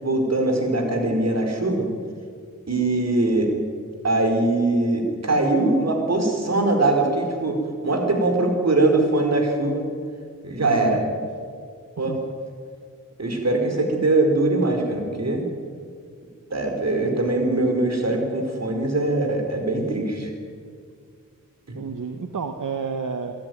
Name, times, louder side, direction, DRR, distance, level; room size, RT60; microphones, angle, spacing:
voice 1, 0.0-1.9 2.7-3.5 4.0-9.8 10.4-11.0 12.0-12.2 13.2-15.4 16.5-20.3 21.7-21.8, right 2 dB, 55° right, 3 dB, 4.6 m, -22 dB
voice 2, 10.6-11.0 12.1-12.2 21.7-23.3, right 5 dB, 80° right, 6 dB, 1.3 m, -30 dB
24.5 x 13.5 x 9.4 m, 2.2 s
wide cardioid pair, 70°, 31 cm